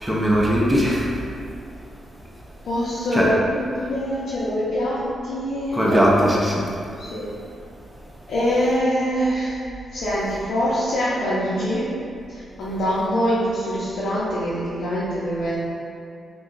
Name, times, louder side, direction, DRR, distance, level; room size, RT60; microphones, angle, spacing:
voice 1, 0.0-1.1 3.1-3.3 5.7-6.6, equal, 10° right, -4 dB, 0.5 m, -19 dB
voice 2, 2.6-5.0 5.2-6.2 7.0-7.3 8.3-9.6 9.9-11.9 12.3-15.6, equal, 80° left, -10 dB, 0.5 m, -24 dB
2.5 x 2.3 x 3.8 m, 2.4 s
cardioid pair, 100°, 0 cm